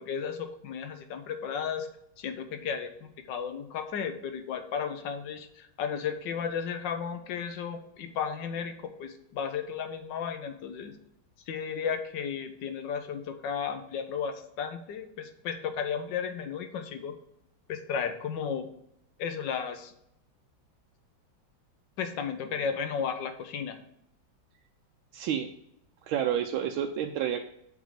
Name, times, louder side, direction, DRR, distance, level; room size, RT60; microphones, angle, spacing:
voice 1, 0.0-1.9 2.2-10.9 11.5-17.1 17.7-18.7 19.2-19.9 22.0-23.8, left 7 dB, 70° left, 7 dB, 1.4 m, -34 dB
voice 2, 25.1-25.5 26.1-27.5, right 9 dB, 80° right, 5 dB, 1.4 m, -29 dB
7.2 x 3.7 x 6.4 m, 0.74 s
omnidirectional pair, 2.2 m